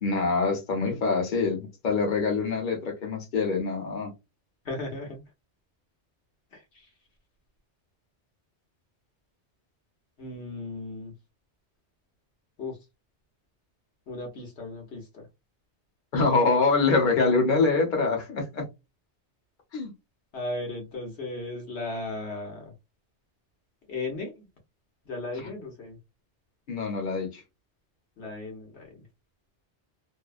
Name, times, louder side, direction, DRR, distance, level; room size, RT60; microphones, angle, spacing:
voice 1, 0.0-4.1 16.1-18.6 19.7-19.9 25.4-25.5 26.7-27.4, left 4 dB, 45° left, 1.0 m, -25 dB
voice 2, 4.6-5.3 6.5-6.9 10.2-11.1 12.6-12.8 14.1-15.3 20.3-22.7 23.9-24.5 25.0-26.0 28.2-29.1, left 2 dB, 70° left, 1.1 m, -36 dB
2.7 x 2.1 x 2.3 m
omnidirectional pair, 1.2 m